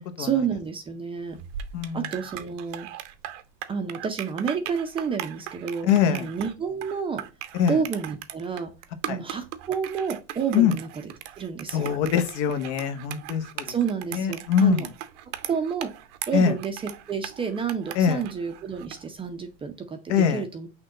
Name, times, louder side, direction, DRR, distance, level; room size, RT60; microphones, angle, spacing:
voice 1, 0.2-1.4 1.9-2.9 3.7-7.2 7.7-8.7 9.1-10.9 11.4-11.9 13.7-14.9 15.5-15.9 16.3-20.7, right 6 dB, 15° right, 0.4 m, -30 dB
sound 1, 1.3-19.1, right 12 dB, 75° right, 0.7 m, -39 dB
voice 2, 1.7-2.1 5.8-6.3 7.5-7.8 9.1-9.2 10.5-10.7 11.7-13.7 14.1-14.9 16.3-16.6 18.0-18.2 20.1-20.4, left 8 dB, 70° left, 0.8 m, -23 dB
6.1 x 2.2 x 3.7 m
supercardioid pair, 135°, 36 cm